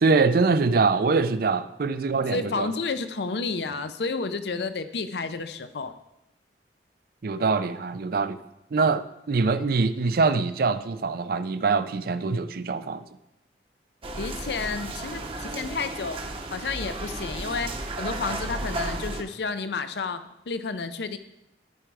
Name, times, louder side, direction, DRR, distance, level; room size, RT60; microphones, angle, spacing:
voice 1, 0.0-2.7 7.2-8.4 8.7-13.1, right 4 dB, 55° right, 0.5 m, -24 dB
voice 2, 2.3-5.9 14.2-16.2 16.5-17.7 18.0-20.2 20.5-21.2, left 4 dB, 65° left, 0.6 m, -31 dB
sound 1, 14.0-19.2, right 2 dB, 30° right, 0.8 m, -34 dB
13.5 x 4.6 x 4.7 m
head